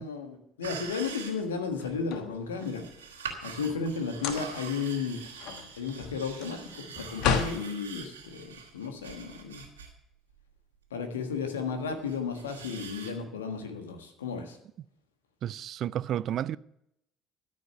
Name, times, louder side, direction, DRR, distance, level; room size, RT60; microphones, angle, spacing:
voice 1, 0.0-2.9 3.1-5.2 5.8-9.6 10.9-14.6, left 5 dB, 80° left, 1.6 m, -34 dB
sound 1, 0.6-1.9 2.6-9.9 10.3-10.4 11.7-13.1, right 6 dB, 80° right, 2.0 m, -44 dB
sound 2, 1.7-2.9 4.1-4.7 5.1-7.6, left 7 dB, 60° left, 1.2 m, -32 dB
voice 2, 15.4-16.6, right 11 dB, 50° right, 0.4 m, -31 dB
13.5 x 6.3 x 8.1 m
figure-of-eight pair, 55°, 0 cm